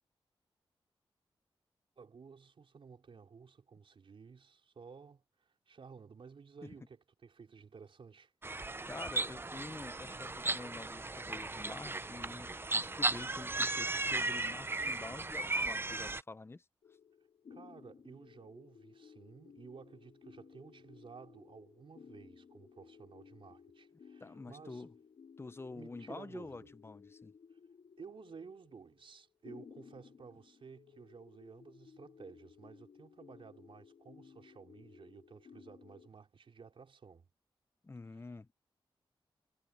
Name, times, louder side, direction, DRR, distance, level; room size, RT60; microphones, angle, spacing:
voice 1, 2.0-8.3 17.5-24.9 25.7-26.7 28.0-37.3, right 5 dB, 65° right, 4.2 m, -54 dB
sound 1, 8.4-16.2, right 2 dB, 25° right, 0.7 m, -36 dB
voice 2, 8.9-12.5 12.8-16.6 24.2-24.9 25.4-27.3 37.8-38.5, left 3 dB, 25° left, 0.7 m, -48 dB
sound 2, 16.8-36.1, left 6 dB, 80° left, 2.2 m, -58 dB
cardioid pair, 80°, 9 cm